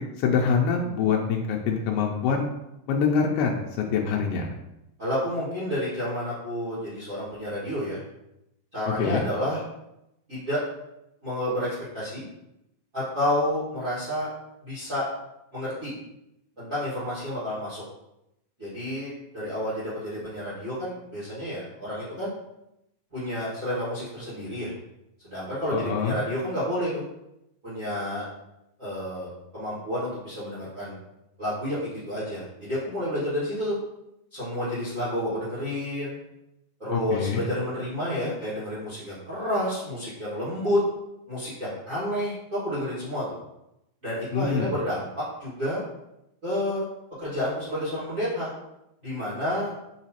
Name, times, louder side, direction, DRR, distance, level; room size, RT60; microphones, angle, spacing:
voice 1, 0.2-2.5 2.9-4.5 9.0-9.2 25.7-26.2 36.9-37.4 44.3-44.7, left 6 dB, 85° left, 1 dB, 2.1 m, -25 dB
voice 2, 5.0-8.0 8.7-9.6 10.3-10.6 11.2-12.2 12.9-14.3 14.6-15.1 15.5-15.9 16.6-17.8 18.6-22.3 23.1-24.7 25.2-27.0 27.6-28.3 28.8-31.0 31.4-33.8 34.3-36.2 36.8-40.8 41.3-43.4 44.0-45.8 46.4-46.9 47.2-48.5 49.0-49.7, left 1 dB, 35° right, -12 dB, 1.6 m, -30 dB
6.2 x 3.0 x 2.9 m, 0.87 s
omnidirectional pair, 3.7 m